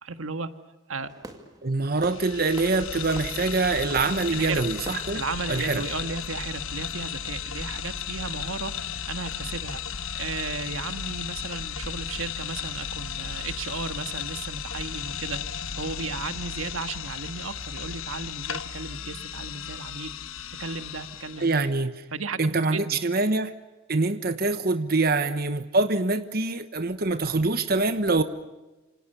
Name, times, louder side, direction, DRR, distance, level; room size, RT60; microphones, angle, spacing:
voice 1, 0.0-0.5 0.9-1.1 4.3-4.6 5.1-20.1 20.6-21.6 22.1-23.0, right 4 dB, 85° right, 9 dB, 1.7 m, -35 dB
Fireworks, 0.9-6.5, right 1 dB, 20° right, 2.3 m, -46 dB
voice 2, 1.6-5.2 5.5-5.8 21.4-22.0 22.4-23.5 23.9-28.2, right 3 dB, 45° right, 10 dB, 1.1 m, -24 dB
sound 1, 1.9-21.6, left 8 dB, 85° left, 1.2 m, -35 dB
27.5 x 26.0 x 6.9 m, 1.1 s
head